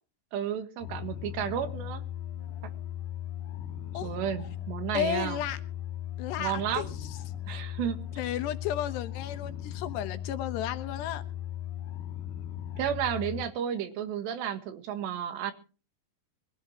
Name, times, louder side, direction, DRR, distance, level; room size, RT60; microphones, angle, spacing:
voice 1, 0.3-2.0 4.0-5.4 6.4-6.9 7.5-8.0 12.8-15.5, right 9 dB, 75° right, 9 dB, 3.7 m, -32 dB
sound 1, 0.8-13.5, left 11 dB, 50° left, 2.6 m, -38 dB
voice 2, 4.9-5.6 6.2-7.1 7.5-7.6 8.2-11.2, left 11 dB, 75° left, 11 dB, 3.1 m, -33 dB
23.5 x 15.5 x 3.0 m, 0.36 s
omnidirectional pair, 5.1 m